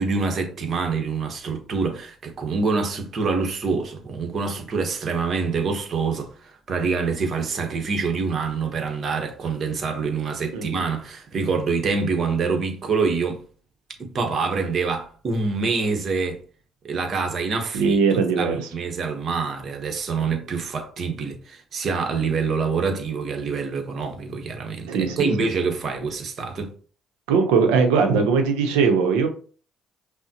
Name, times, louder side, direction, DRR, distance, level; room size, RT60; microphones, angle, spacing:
voice 1, 0.0-13.4 14.0-16.4 16.8-18.0 18.4-26.7, right 4 dB, 50° right, 1.0 m, -26 dB
voice 2, 17.7-18.6 24.9-25.3 27.3-29.3, right 5 dB, 80° right, 0.7 m, -20 dB
5.4 x 2.1 x 2.9 m
hypercardioid pair, 65°, 0 cm